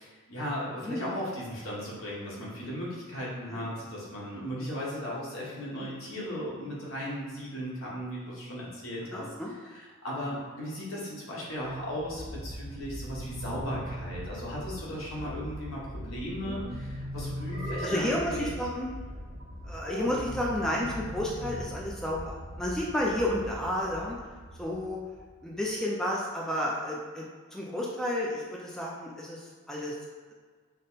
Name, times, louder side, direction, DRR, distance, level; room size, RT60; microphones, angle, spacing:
voice 1, 0.0-9.3 9.6-18.5, equal, 75° left, -6 dB, 1.3 m, -36 dB
voice 2, 9.1-9.5 17.8-18.9 19.6-24.2 24.6-25.0 25.4-29.4 29.7-30.0, left 1 dB, 5° left, -4 dB, 0.4 m, -31 dB
sound 1, 11.8-25.7, equal, 40° right, 0.8 m, -42 dB
sound 2, 12.6-14.6 16.3-18.4 20.0-22.0, equal, 85° right, 0.4 m, -41 dB
sound 3, 15.9-16.7 17.5-18.3 19.8-20.3, equal, 55° left, 1.3 m, -38 dB
5.2 x 2.1 x 4.0 m, 1.5 s
head